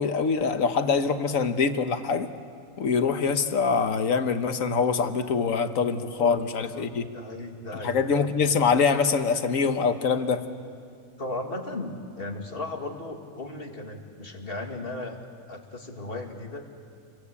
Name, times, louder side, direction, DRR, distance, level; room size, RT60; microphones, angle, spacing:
voice 1, 0.0-2.3 2.8-7.0 7.8-10.4, left 5 dB, 80° left, 9 dB, 1.5 m, -24 dB
voice 2, 6.7-8.0 11.2-15.2 15.5-16.6, left 2 dB, 45° left, 2 dB, 2.5 m, -36 dB
28.5 x 22.5 x 8.4 m, 2.2 s
omnidirectional pair, 1.4 m